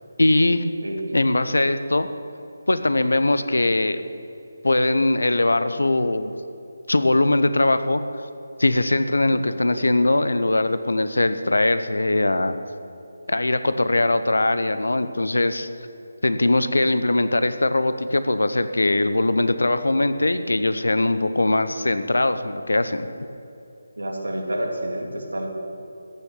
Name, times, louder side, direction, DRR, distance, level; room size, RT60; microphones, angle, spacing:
voice 1, 0.2-0.6 1.1-2.1 2.7-4.0 4.6-6.3 6.9-8.0 8.6-12.6 13.3-15.7 16.2-23.1, left 2 dB, 70° left, 11 dB, 0.9 m, -21 dB
voice 2, 9.3-9.8 24.0-25.5, right 1 dB, 75° right, 2 dB, 2.6 m, -29 dB
14.5 x 7.1 x 9.3 m, 2.8 s
figure-of-eight pair, 155°, 0 cm